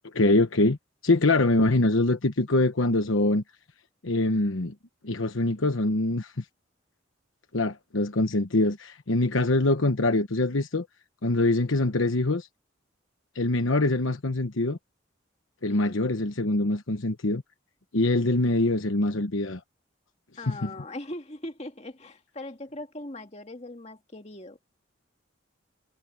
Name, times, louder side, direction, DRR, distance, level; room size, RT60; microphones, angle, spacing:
voice 1, 0.1-0.8 1.0-3.4 4.0-4.7 5.0-6.3 7.5-10.9 11.2-12.5 13.3-14.8 15.6-17.4 17.9-19.6 20.5-20.7, left 2 dB, 85° left, 1.1 m, -24 dB
voice 2, 20.4-24.6, left 1 dB, 35° left, 2.2 m, -40 dB
head